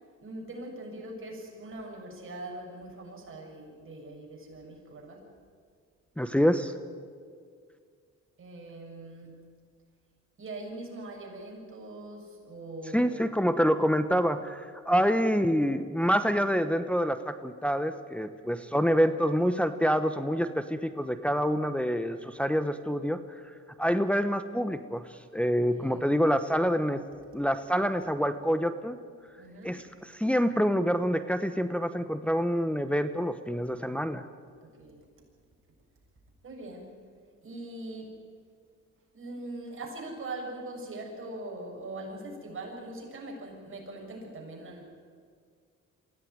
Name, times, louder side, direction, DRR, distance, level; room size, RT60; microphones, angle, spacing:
voice 1, 0.2-5.3 8.4-9.5 10.4-13.3 25.5-26.1 29.4-29.9 34.6-35.1 36.4-36.9 37.4-38.3 39.1-44.8, right 2 dB, 45° right, 0 dB, 6.9 m, -42 dB
voice 2, 6.2-6.7 12.9-23.2 23.8-27.0 27.3-29.0 29.6-29.8 30.1-34.3, equal, 5° left, 9 dB, 1.0 m, -26 dB
23.5 x 16.0 x 9.6 m, 2.1 s
cardioid pair, 90°, 30 cm